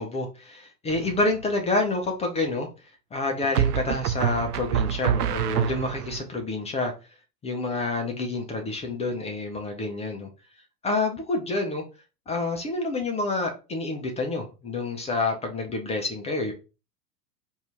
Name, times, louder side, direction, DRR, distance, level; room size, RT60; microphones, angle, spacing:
voice 1, 0.0-2.7 3.1-6.9 7.4-10.3 10.8-11.8 12.3-16.5, left 2 dB, 15° left, 3 dB, 0.6 m, -28 dB
sound 1, 0.9-1.4 3.5-6.2, right 10 dB, 70° right, 0.5 m, -26 dB
4.4 x 2.6 x 3.4 m, 0.31 s
figure-of-eight pair, 90°, 48 cm